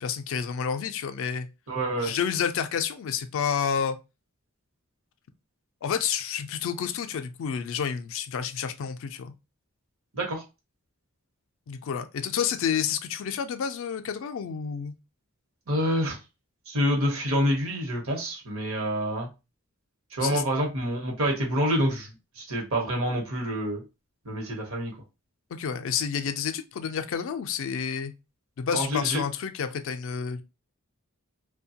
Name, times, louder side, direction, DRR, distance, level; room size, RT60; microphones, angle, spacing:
voice 1, 0.0-1.5 2.0-4.0 5.8-9.3 11.7-14.9 20.2-20.4 25.5-28.1 28.6-30.4, left 7 dB, 60° left, 0.3 m, -29 dB
voice 2, 1.7-2.1 10.1-10.4 15.7-16.2 16.7-19.3 20.1-23.8 24.2-25.0 28.7-29.2, equal, 65° right, 0.9 m, -27 dB
2.7 x 2.2 x 2.7 m
head